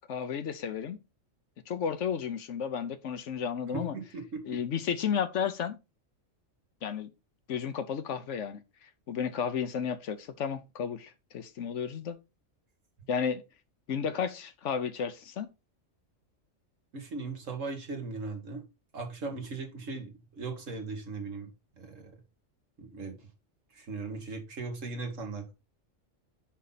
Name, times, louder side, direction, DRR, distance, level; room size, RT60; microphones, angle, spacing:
voice 1, 0.1-1.0 1.7-4.0 4.5-5.8 6.8-7.1 7.5-8.6 9.1-12.2 13.1-13.4 13.9-15.5, left 7 dB, 70° left, 1.1 m, -32 dB
voice 2, 3.7-4.6 16.9-18.7 18.9-21.5 21.8-22.1 22.8-23.2 23.7-25.5, right 3 dB, 75° right, 2.0 m, -38 dB
6.3 x 5.5 x 4.0 m
omnidirectional pair, 1.3 m